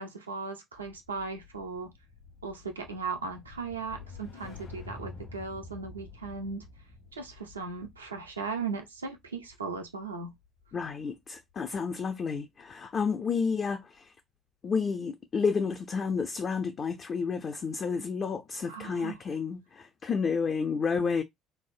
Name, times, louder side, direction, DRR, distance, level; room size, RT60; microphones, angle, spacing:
voice 1, 0.0-1.9 2.4-6.6 7.1-10.3 18.7-19.2, right 4 dB, 85° right, 0.4 m, -37 dB
sound 1, 0.7-11.2 11.5-11.8, left 4 dB, 65° left, 1.0 m, -49 dB
voice 2, 10.7-14.1 14.6-21.2, left 5 dB, 40° left, 0.4 m, -30 dB
3.2 x 2.1 x 2.4 m
figure-of-eight pair, 55°, 0 cm